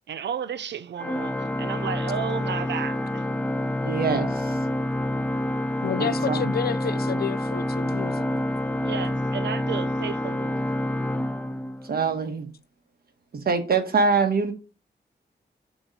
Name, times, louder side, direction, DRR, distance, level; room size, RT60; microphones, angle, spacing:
voice 1, 0.1-3.2 8.8-10.6, right 8 dB, 75° right, 0.5 m, -33 dB
Organ, 1.0-12.1, left 1 dB, 5° left, 0.4 m, -27 dB
voice 2, 3.8-4.6 6.0-6.5 11.9-12.5 13.3-14.5, right 4 dB, 60° right, 1.2 m, -24 dB
voice 3, 5.8-8.4, left 7 dB, 60° left, 0.5 m, -30 dB
7.8 x 3.1 x 5.3 m
wide cardioid pair, 150°, 18 cm